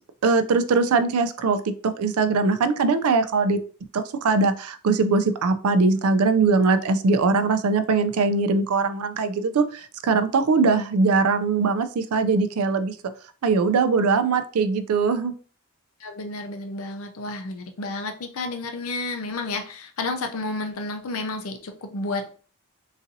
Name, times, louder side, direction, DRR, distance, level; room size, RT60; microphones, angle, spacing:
voice 1, 0.2-3.6 3.9-13.0 13.4-15.3, right 4 dB, 80° right, 11 dB, 0.4 m, -21 dB
voice 2, 16.0-22.4, left 2 dB, 70° left, 5 dB, 0.5 m, -31 dB
3.9 x 2.6 x 2.6 m, 0.40 s
head